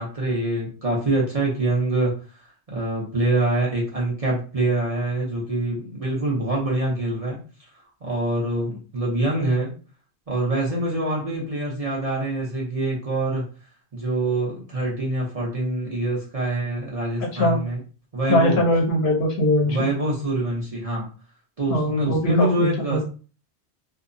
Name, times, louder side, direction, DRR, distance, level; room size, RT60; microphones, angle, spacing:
voice 1, 0.0-2.1 2.7-7.4 8.0-9.8 10.3-13.4 13.9-17.8 18.1-18.6 19.6-21.1 21.6-23.0, right 2 dB, 40° right, -4 dB, 0.7 m, -25 dB
voice 2, 18.3-19.9 21.7-23.0, left 1 dB, 70° left, 2 dB, 0.9 m, -21 dB
2.8 x 2.0 x 2.5 m, 0.37 s
omnidirectional pair, 1.1 m